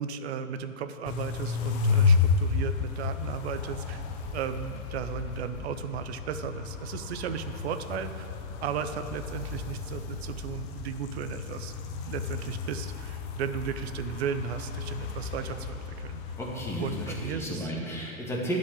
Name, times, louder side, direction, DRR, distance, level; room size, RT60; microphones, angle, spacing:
voice 1, 0.0-4.0 4.3-8.3 8.6-16.2 16.8-17.7, right 7 dB, 50° right, 10 dB, 0.7 m, -35 dB
sound 1, 1.0-17.3, left 5 dB, 40° left, 0.9 m, -32 dB
voice 2, 16.4-18.6, equal, 5° left, -4 dB, 2.0 m, -33 dB
11.5 x 5.2 x 8.0 m, 2.5 s
figure-of-eight pair, 110°, 41 cm